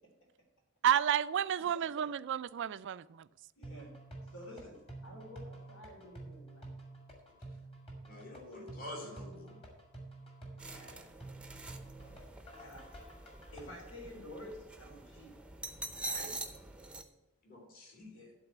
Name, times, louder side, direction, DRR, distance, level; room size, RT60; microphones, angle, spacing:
voice 1, 0.8-3.3, right 9 dB, 55° right, 0.3 m, -31 dB
voice 2, 3.6-4.0 4.3-6.7 8.5-9.4 10.7-11.1 12.6-12.9 13.5-15.4 16.1-16.5 18.1-18.3, equal, 75° left, 3.5 m, -50 dB
sound 1, 3.6-13.6, right 2 dB, 25° left, 2.2 m, -49 dB
voice 3, 8.1-9.6 17.4-18.1, left 1 dB, 40° left, 2.5 m, -47 dB
sound 2, 10.6-17.0, right 2 dB, 5° right, 0.6 m, -45 dB
12.0 x 4.1 x 8.0 m
head